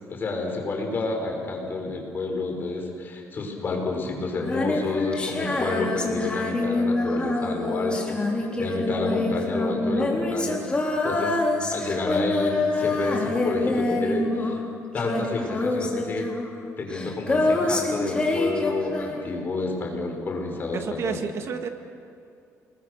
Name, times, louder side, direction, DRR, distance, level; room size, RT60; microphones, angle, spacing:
voice 1, 0.1-8.2 8.6-11.4 11.7-14.6 14.9-16.3 16.8-21.2, left 3 dB, 35° left, 1 dB, 5.4 m, -29 dB
Female singing, 4.4-14.7 15.0-19.4, left 2 dB, 15° left, 3.8 m, -26 dB
voice 2, 20.7-21.7, right 6 dB, 50° right, 6 dB, 1.7 m, -30 dB
29.5 x 21.0 x 6.6 m, 2.5 s
cardioid pair, 140°, 6 cm